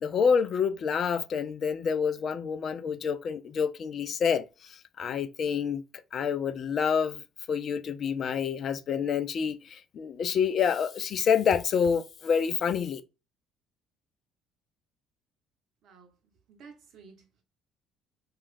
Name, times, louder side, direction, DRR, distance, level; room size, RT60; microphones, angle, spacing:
voice 1, 0.0-5.8 6.1-7.2 7.5-13.0, left 6 dB, 45° left, 0.3 m, -28 dB
voice 2, 15.8-16.2 16.5-17.4, right 5 dB, 55° right, 0.8 m, -53 dB
3.1 x 2.3 x 2.5 m
figure-of-eight pair, 55°, 0 cm